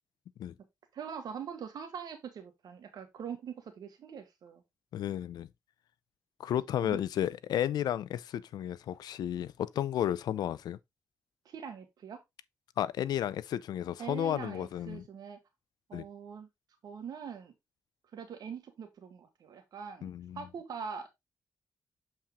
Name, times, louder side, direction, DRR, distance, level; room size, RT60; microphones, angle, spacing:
voice 1, 0.9-4.6 6.8-7.0 11.5-12.2 14.0-15.4 15.9-16.5 16.8-17.5 18.1-21.1, right 7 dB, 80° right, 1.9 m, -43 dB
voice 2, 4.9-5.5 6.4-10.8 12.8-15.0 15.9-16.0 20.0-20.4, left 11 dB, 90° left, 0.5 m, -33 dB
7.6 x 4.4 x 3.6 m
cardioid pair, 70°, 7 cm